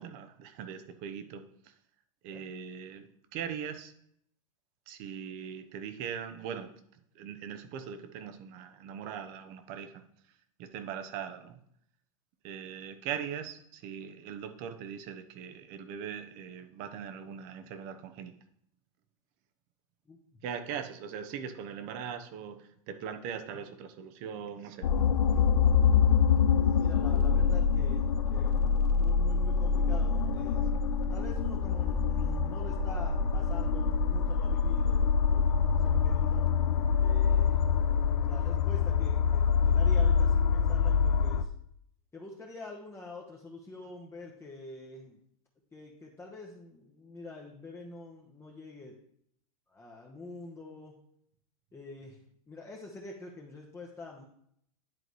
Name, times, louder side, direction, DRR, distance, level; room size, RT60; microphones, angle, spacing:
voice 1, 0.0-1.4 2.2-3.1 3.3-3.9 4.9-6.7 7.2-10.0 10.6-11.6 12.4-18.3 20.4-22.6 22.9-24.9, right 8 dB, 50° right, 9 dB, 0.9 m, -40 dB
sound 1, 24.8-41.4, left 6 dB, 85° left, 0.5 m, -25 dB
voice 2, 26.8-30.6 31.1-36.4 37.0-37.6 38.2-41.5 42.1-45.2 45.7-49.0 49.7-50.9 51.7-52.2 52.5-54.2, left 2 dB, 15° left, -2 dB, 1.0 m, -46 dB
10.5 x 3.8 x 3.1 m, 0.69 s
hypercardioid pair, 110°, 19 cm